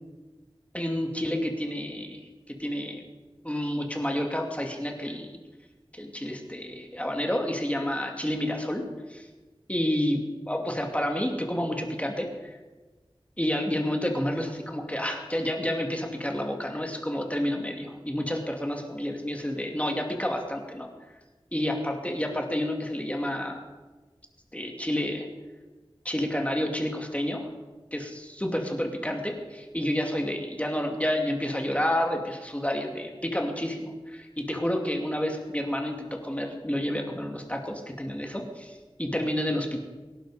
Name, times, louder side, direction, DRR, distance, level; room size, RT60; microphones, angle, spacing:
voice 1, 0.7-3.0 3.4-5.4 5.9-8.8 9.1-9.3 9.7-10.2 10.5-12.5 13.4-20.9 21.5-23.6 24.5-25.3 26.0-27.5 27.9-39.8, left 1 dB, 15° left, 2 dB, 2.5 m, -30 dB
24.0 x 11.5 x 5.0 m, 1.2 s
wide cardioid pair, 45°, 10 cm